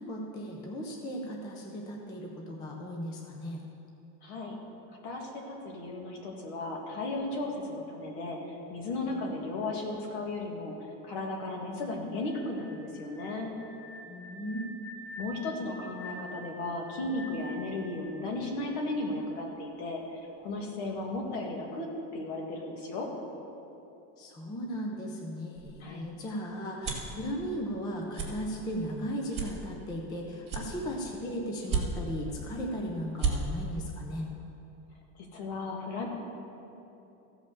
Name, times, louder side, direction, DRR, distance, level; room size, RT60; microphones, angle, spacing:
voice 1, 0.0-3.6 14.1-14.7 24.2-34.3, equal, 10° left, 0 dB, 0.4 m, -36 dB
voice 2, 4.2-4.6 5.0-10.7 11.0-13.5 15.2-20.0 20.4-23.1 25.8-26.0 35.2-36.1, left 2 dB, 60° left, 0 dB, 2.1 m, -35 dB
sound 1, 12.2-19.2, left 1 dB, 75° left, 1.7 m, -47 dB
sound 2, 25.5-27.2 27.6-27.8 28.1-28.3 28.8-28.9 29.3-30.1 30.4-31.1 31.6-32.2 32.7-32.8 33.0-33.3, right 5 dB, 15° right, 2.0 m, -32 dB
15.0 x 5.2 x 6.9 m, 2.9 s
cardioid pair, 180°, 39 cm